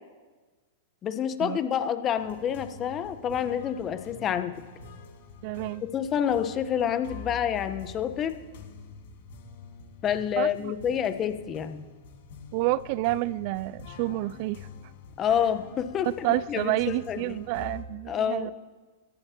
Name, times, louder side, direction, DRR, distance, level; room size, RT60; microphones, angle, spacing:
voice 1, 1.0-4.5 5.9-8.4 10.0-11.8 15.2-16.8 17.1-17.4 18.1-18.5, left 9 dB, 30° left, 9 dB, 1.1 m, -28 dB
sound 1, 2.2-17.8, left 4 dB, 65° left, 2.1 m, -46 dB
voice 2, 5.4-5.8 10.4-10.7 12.5-14.7 16.0-18.5, right 17 dB, 55° right, 20 dB, 0.3 m, -29 dB
23.0 x 12.0 x 3.0 m, 1.4 s
hypercardioid pair, 105°, 0 cm